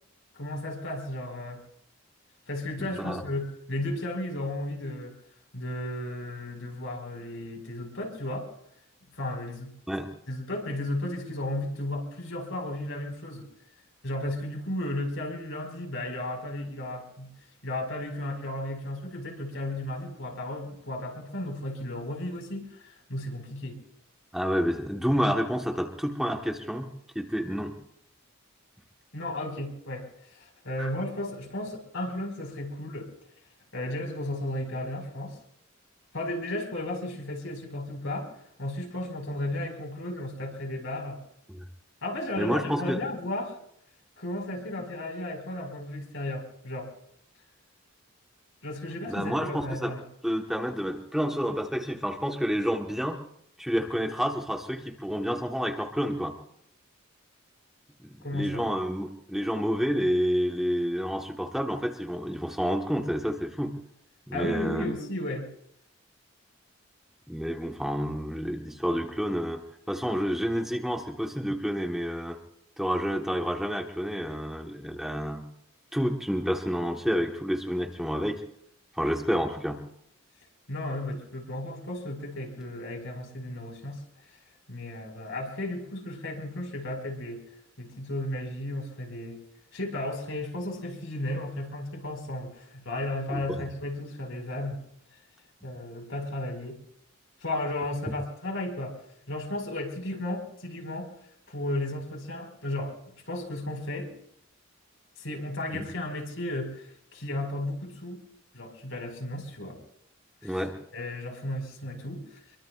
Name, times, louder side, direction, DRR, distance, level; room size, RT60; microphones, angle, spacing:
voice 1, 0.3-1.6 2.5-5.1 5.5-8.5 9.1-9.7 10.3-13.5 14.0-17.3 17.6-23.8 29.1-33.1 33.7-35.4 36.1-38.3 38.6-41.2 42.0-43.6 44.2-46.9 48.6-50.0 58.2-58.7 64.3-65.5 80.7-84.0 84.7-87.4 87.8-89.4 89.7-94.8 95.6-96.8 97.4-99.0 99.3-101.1 101.5-103.0 103.3-104.1 105.2-108.2 108.5-109.8 110.4-110.6 110.9-112.4, left 1 dB, 70° left, 2 dB, 4.9 m, -34 dB
voice 2, 2.8-3.2 9.9-10.1 24.3-26.9 27.1-27.7 30.8-30.9 41.5-41.6 42.4-43.0 49.1-49.9 50.2-53.2 53.6-56.4 58.0-63.7 64.3-64.9 67.3-69.6 69.9-72.4 72.8-75.4 75.9-78.4 78.9-79.8 93.3-93.4 105.7-105.9 110.4-110.8, equal, ahead, 2 dB, 1.2 m, -29 dB
26.0 x 23.0 x 2.4 m, 0.72 s
head